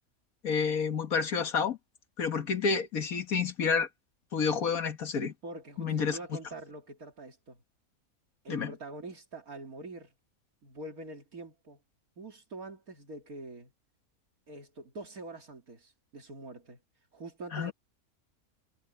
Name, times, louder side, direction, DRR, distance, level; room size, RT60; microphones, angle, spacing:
voice 1, 0.4-1.8 2.2-3.9 4.3-5.3 5.8-6.2 8.5-8.7 17.5-17.7, left 5 dB, 75° left, 2.0 m, -29 dB
voice 2, 5.4-7.6 8.4-10.1 10.6-11.8 12.2-13.7 14.5-16.8 17.1-17.7, right 2 dB, 75° right, 3.0 m, -45 dB
omnidirectional pair, 1.5 m